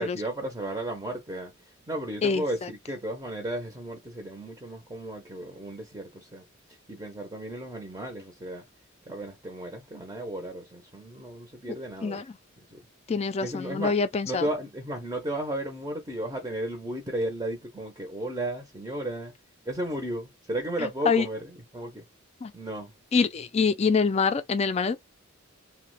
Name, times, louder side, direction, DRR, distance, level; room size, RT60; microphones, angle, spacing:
voice 1, 0.0-1.5 1.9-6.5 6.9-8.6 9.1-12.2 12.7-12.8 13.4-13.9 14.2-19.3 19.7-22.0 22.5-22.9, right 1 dB, 15° right, 0.6 m, -34 dB
voice 2, 2.2-2.7 12.0-12.2 13.1-14.5 20.8-21.3 22.4-22.5 23.1-25.0, left 5 dB, 30° left, 0.4 m, -25 dB
2.9 x 2.1 x 3.0 m
head